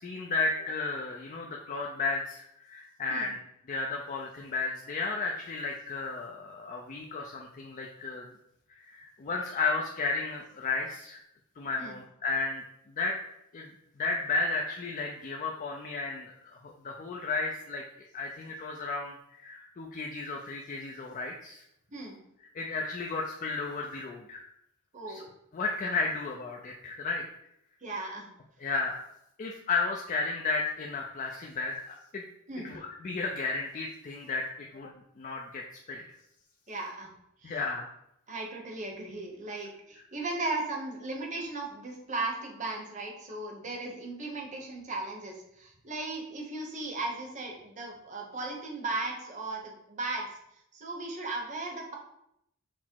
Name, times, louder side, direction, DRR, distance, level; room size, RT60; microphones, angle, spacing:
voice 1, 0.0-3.4 3.7-8.3 8.7-11.2 11.6-13.2 13.5-16.3 16.6-17.8 18.1-21.6 22.5-24.5 25.1-25.2 25.5-27.2 28.6-29.0 29.4-32.2 32.6-36.0 37.4-37.9, left 3 dB, 35° left, 0 dB, 0.4 m, -33 dB
voice 2, 27.8-28.3 32.5-32.7 36.7-37.1 37.4-37.6 38.3-50.4 50.7-51.9, right 2 dB, 35° right, 0 dB, 0.8 m, -36 dB
5.9 x 2.0 x 4.4 m, 0.78 s
head